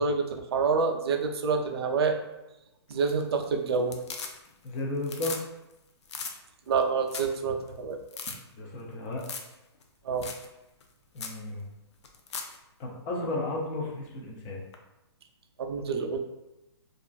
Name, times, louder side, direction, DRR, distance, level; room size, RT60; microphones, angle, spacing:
voice 1, 0.0-2.2 2.9-4.0 6.7-8.0 10.0-10.3 15.6-16.2, right 5 dB, 65° right, 4 dB, 0.4 m, -27 dB
sound 1, 2.9-3.4 3.7-4.7 5.0-5.4 5.7-5.8 6.1-6.3 6.8-6.9 7.1-7.4 7.7-7.8 8.1-8.4 9.2-9.5 9.8-9.9 10.2-10.5 10.8-10.9 11.2-11.4 12.0-12.6 14.7-14.8, left 5 dB, 85° left, 0.4 m, -38 dB
voice 2, 4.6-5.4 8.5-9.2 11.1-11.6 12.8-14.6, left 2 dB, 20° left, -1 dB, 0.4 m, -33 dB
2.4 x 2.3 x 2.3 m, 0.93 s
hypercardioid pair, 155°, 14 cm